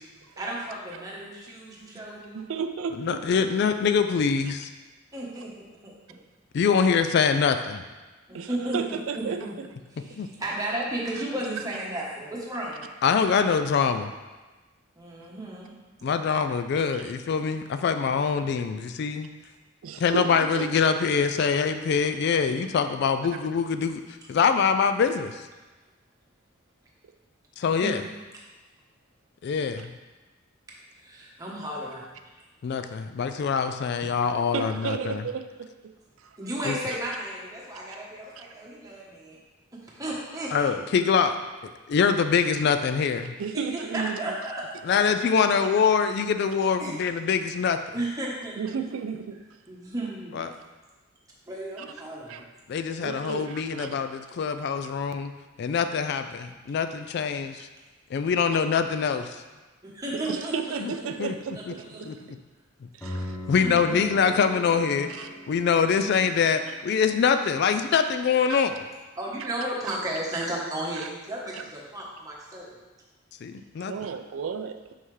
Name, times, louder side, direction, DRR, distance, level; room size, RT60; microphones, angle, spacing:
voice 1, 0.4-2.4 5.1-5.9 8.3-8.8 9.1-9.5 9.9-12.9 15.0-15.7 16.0-16.1 27.6-27.9 31.0-32.0 36.4-39.4 39.8-40.7 43.5-44.6 46.8-46.9 47.9-48.8 49.7-50.4 51.5-52.4 59.8-60.8 61.5-61.6 61.9-62.0 63.3-63.8 69.2-72.8, right 1 dB, 15° right, -4 dB, 1.1 m, -34 dB
voice 2, 2.3-3.2 8.3-9.5 13.4-13.5 16.7-16.8 19.8-20.7 21.4-21.5 23.3-23.4 34.5-35.7 36.2-36.4 38.4-38.5 43.4-44.4 48.6-49.4 51.8-51.9 52.3-52.4 53.0-54.0 60.1-62.1 62.9-63.4 65.1-65.3 67.9-68.0 68.5-68.7 70.3-70.5 71.5-71.7 73.9-74.8, right 6 dB, 75° right, 7 dB, 0.4 m, -33 dB
voice 3, 3.0-4.7 6.5-7.8 10.2-10.3 13.0-14.1 16.0-19.3 20.0-24.0 24.3-25.4 27.6-28.0 29.4-29.9 32.6-35.2 36.7-36.8 40.5-41.4 41.6-43.3 44.9-47.8 50.3-50.5 52.7-55.3 55.6-57.7 58.1-59.4 60.8-60.9 61.2-61.3 62.0-62.1 63.5-65.1 65.5-68.8 73.4-73.9, left 6 dB, 55° left, 9 dB, 0.3 m, -24 dB
sound 1, 63.0-67.1, equal, 10° left, 0.8 m, -39 dB
5.6 x 5.5 x 3.2 m, 1.2 s
head